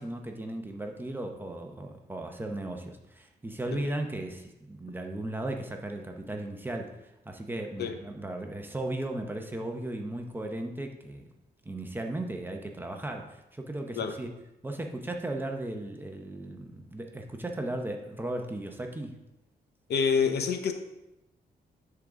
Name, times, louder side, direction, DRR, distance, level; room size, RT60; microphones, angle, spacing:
voice 1, 0.0-7.0 7.3-11.2 11.6-14.3 14.6-19.2, right 1 dB, 10° right, 3 dB, 0.7 m, -36 dB
voice 2, 19.9-20.7, left 6 dB, 70° left, 7 dB, 0.7 m, -27 dB
9.9 x 3.9 x 3.6 m, 0.91 s
wide cardioid pair, 135°, 17 cm